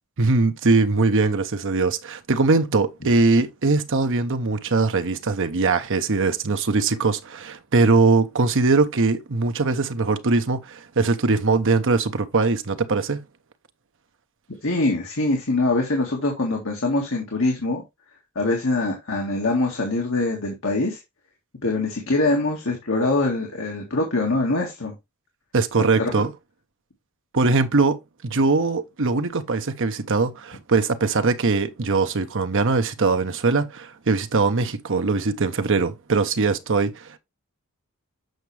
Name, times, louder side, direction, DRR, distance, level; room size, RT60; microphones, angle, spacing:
voice 1, 0.2-13.2 25.5-26.3 27.3-28.0 28.2-37.2, right 3 dB, 60° right, 0.9 m, -21 dB
voice 2, 14.6-17.8 18.4-21.0 21.6-24.9 25.9-26.1, left 2 dB, 65° left, 1.9 m, -23 dB
7.9 x 5.9 x 3.3 m
head